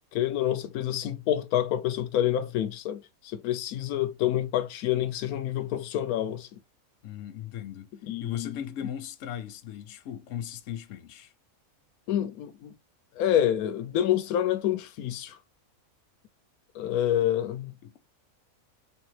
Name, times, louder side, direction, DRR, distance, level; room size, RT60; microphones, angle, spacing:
voice 1, 0.1-6.6 8.0-8.6 12.1-12.7 13.2-15.4 16.7-17.7, left 11 dB, 90° left, 1.1 m, -28 dB
voice 2, 7.0-7.9 8.2-11.3 17.8-18.0, left 10 dB, 65° left, 1.0 m, -37 dB
3.4 x 3.4 x 3.1 m
omnidirectional pair, 1.5 m